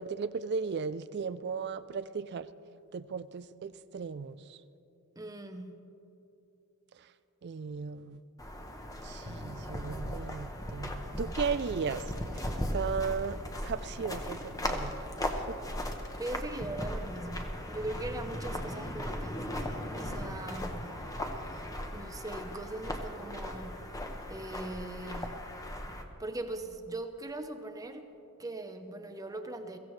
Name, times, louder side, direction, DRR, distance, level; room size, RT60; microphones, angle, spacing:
voice 1, 0.0-2.5 2.9-4.6 7.4-8.2 9.0-12.0 12.3-12.5 12.7-14.9 15.4-15.6, right 5 dB, 50° right, 14 dB, 0.4 m, -36 dB
voice 2, 5.2-5.8 16.2-19.4 19.9-21.0 21.9-23.8 24.3-25.5 26.2-28.1 28.4-29.8, right 2 dB, 15° right, 7 dB, 0.8 m, -40 dB
sound 1, 8.4-26.0, left 1 dB, 15° left, 1.0 m, -37 dB
22.5 x 15.5 x 3.2 m, 2.9 s
head